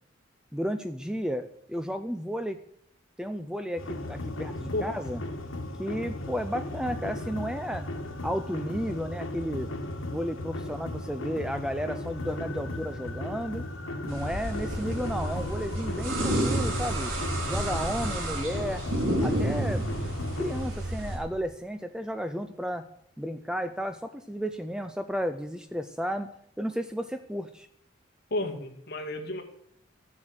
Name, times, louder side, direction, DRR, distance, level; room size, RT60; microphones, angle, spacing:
voice 1, 0.5-2.6 3.2-5.2 5.8-7.8 8.2-9.7 10.1-13.6 14.0-17.1 17.4-18.8 19.2-19.8 20.4-22.8 23.2-26.3 26.6-27.7, equal, 5° right, 9 dB, 0.5 m, -33 dB
sound 1, 3.8-20.7, left 1 dB, 85° left, 1.7 m, -36 dB
sound 2, 14.1-21.2, right 1 dB, 75° right, 5.1 m, -30 dB
voice 2, 28.3-29.4, left 1 dB, 50° left, 1 dB, 2.3 m, -32 dB
14.0 x 7.4 x 7.9 m, 0.70 s
head